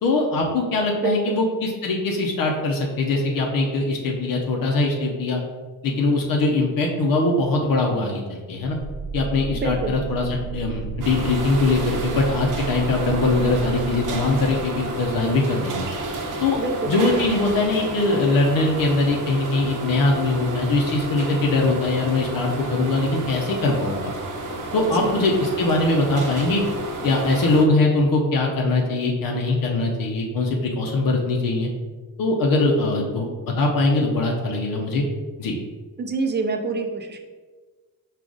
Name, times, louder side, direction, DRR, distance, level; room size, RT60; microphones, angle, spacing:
voice 1, 0.0-5.4 5.8-8.8 9.1-15.9 16.4-16.6 16.9-24.1 24.7-26.6 27.0-31.7 32.2-35.0 35.4-35.6, left 2 dB, 70° left, 0 dB, 0.7 m, -22 dB
voice 2, 1.0-1.4 9.6-9.9 16.6-16.9 25.0-25.1 36.0-37.2, right 3 dB, 30° right, 3 dB, 0.6 m, -26 dB
sound 1, 8.7-15.3, right 6 dB, 25° left, 0.6 m, -33 dB
sound 2, 11.0-27.7, right 2 dB, 60° right, 0.8 m, -31 dB
4.8 x 2.4 x 3.8 m, 1.4 s
cardioid pair, 90°, 35 cm